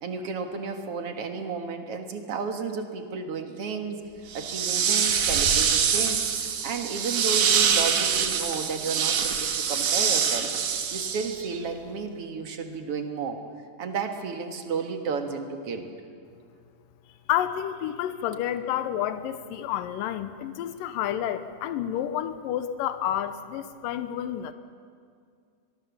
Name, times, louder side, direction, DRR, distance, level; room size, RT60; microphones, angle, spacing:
voice 1, 0.0-4.0 4.3-10.5 10.9-13.4 13.8-15.9, right 5 dB, 50° right, 5 dB, 2.3 m, -32 dB
sound 1, 4.3-11.6, right 7 dB, 75° right, 3.2 m, -25 dB
voice 2, 17.3-24.5, left 11 dB, 90° left, 11 dB, 2.5 m, -30 dB
23.0 x 22.0 x 7.2 m, 2.3 s
omnidirectional pair, 3.9 m